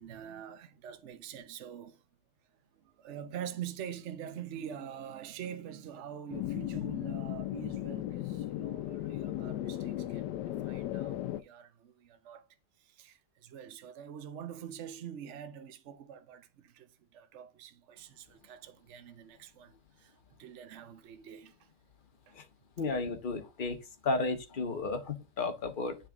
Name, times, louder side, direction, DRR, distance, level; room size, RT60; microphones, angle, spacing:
voice 1, 0.0-2.0 2.7-12.5 12.8-21.7 22.3-22.4, right 9 dB, 55° right, 1.0 m, -45 dB
sound 1, 6.3-11.4, left 13 dB, 85° left, 1.2 m, -36 dB
voice 2, 22.8-26.0, left 3 dB, 35° left, 0.9 m, -33 dB
9.8 x 3.6 x 3.5 m
omnidirectional pair, 1.8 m